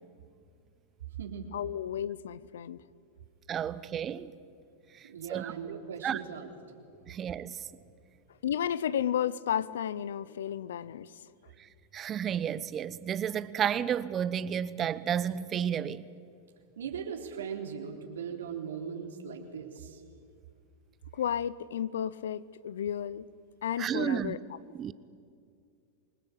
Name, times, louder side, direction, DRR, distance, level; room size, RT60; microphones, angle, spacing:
voice 1, 1.5-2.8 8.4-11.3 21.1-23.3 23.6-24.4, left 9 dB, 80° left, 0.8 m, -32 dB
voice 2, 3.5-4.3 4.9-5.5 6.0-6.2 7.1-7.7 11.6-16.1 23.8-24.4 24.7-24.9, right 9 dB, 30° right, 1.0 m, -32 dB
voice 3, 5.0-6.5 16.8-20.0, right 7 dB, 85° right, 3.6 m, -39 dB
26.5 x 19.5 x 8.8 m
hypercardioid pair, 110°, 0 cm